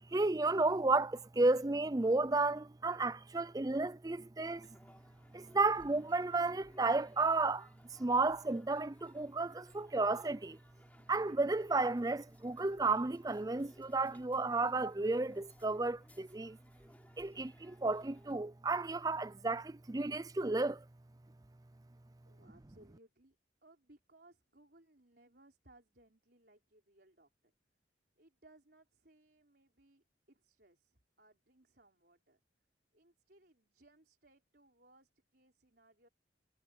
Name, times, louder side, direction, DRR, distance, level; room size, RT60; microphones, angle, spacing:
voice 1, 0.1-4.7 5.3-7.7 8.0-10.6 11.1-16.6 17.2-20.8, right 3 dB, 20° right, 0.4 m, -32 dB
sound 1, 4.4-18.3, left 1 dB, 10° left, 3.7 m, -64 dB
voice 2, 22.2-23.4 23.6-27.5 28.1-32.4 32.9-36.1, right 2 dB, 55° right, 4.7 m, -65 dB
head